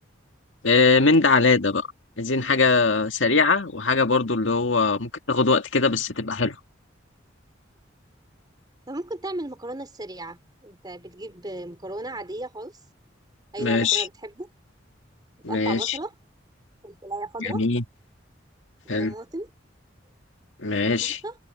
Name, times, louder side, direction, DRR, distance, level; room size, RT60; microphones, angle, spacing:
voice 1, 0.6-1.9 2.2-6.6 13.6-14.1 15.4-16.0 17.4-17.8 18.9-19.1 20.6-21.2, left 4 dB, 85° left, 1.9 m, -21 dB
voice 2, 8.9-12.8 13.5-14.5 15.5-16.1 16.8-17.6 18.8-19.5 20.9-21.4, right 2 dB, 20° right, 3.5 m, -35 dB
head